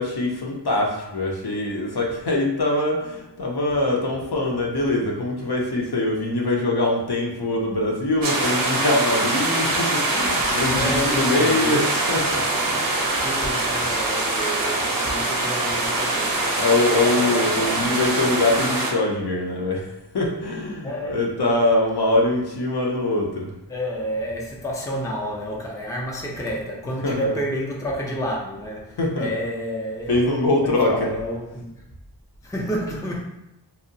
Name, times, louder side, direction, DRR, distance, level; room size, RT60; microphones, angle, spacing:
voice 1, 0.0-13.0 16.6-23.5 27.0-27.3 29.0-29.3 30.1-31.1, left 2 dB, 60° left, 0.6 m, -23 dB
sound 1, 8.2-18.9, right 2 dB, 50° right, 0.5 m, -23 dB
voice 2, 10.2-11.9 13.2-17.9 20.8-21.6 23.7-31.8 32.4-33.2, equal, 10° left, 0.4 m, -30 dB
2.7 x 2.0 x 2.6 m
wide cardioid pair, 45°, 43 cm